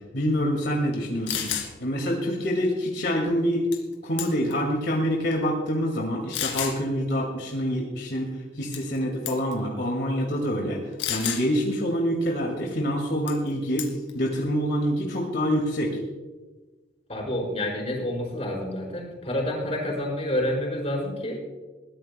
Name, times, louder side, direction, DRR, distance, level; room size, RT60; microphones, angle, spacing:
voice 1, 0.1-3.7 4.0-8.3 8.6-10.8 11.1-13.9 14.1-16.0, equal, 70° left, -1 dB, 2.4 m, -26 dB
sound 1, 0.9-1.0 1.3-1.7 3.7-3.9 4.2-4.6 5.3-5.4 6.3-6.8 8.7-9.0 9.3-9.5 11.0-11.4 13.3-13.5 13.8-14.1, left 9 dB, 85° left, 2.7 m, -30 dB
voice 2, 17.1-21.4, left 1 dB, 35° left, -2 dB, 5.1 m, -28 dB
22.0 x 16.5 x 2.3 m, 1.3 s
head